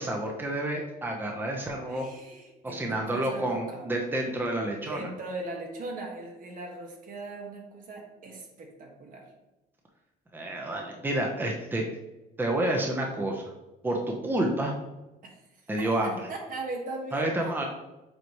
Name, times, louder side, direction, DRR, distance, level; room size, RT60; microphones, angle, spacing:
voice 1, 0.0-2.1 2.6-5.1 10.3-11.8 12.4-13.4 13.8-14.7 15.7-16.2 17.1-17.6, right 1 dB, 10° right, 0 dB, 0.9 m, -29 dB
voice 2, 1.9-3.9 4.8-9.3 15.2-15.4 15.8-17.7, right 2 dB, 55° right, 1 dB, 1.5 m, -39 dB
7.8 x 4.0 x 3.1 m, 1.0 s
cardioid pair, 110°, 17 cm